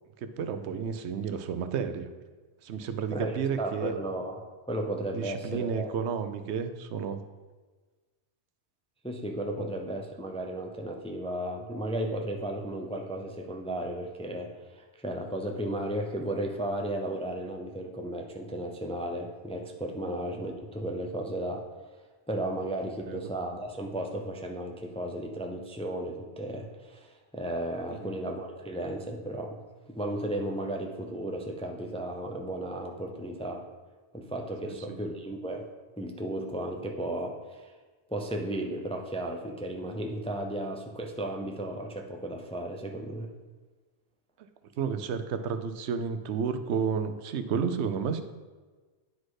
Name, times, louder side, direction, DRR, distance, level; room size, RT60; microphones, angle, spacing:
voice 1, 0.2-2.1 2.6-3.9 5.1-7.2 9.6-9.7 23.1-23.2 27.9-28.2 34.6-35.0 44.8-48.2, right 6 dB, 80° right, 10 dB, 0.9 m, -31 dB
voice 2, 3.1-4.4 4.7-5.9 9.0-21.6 22.3-29.6 29.9-33.6 34.1-35.7 36.0-37.7 38.1-43.3, right 1 dB, 10° left, 3 dB, 0.4 m, -34 dB
9.4 x 4.2 x 4.8 m, 1.3 s
omnidirectional pair, 1.1 m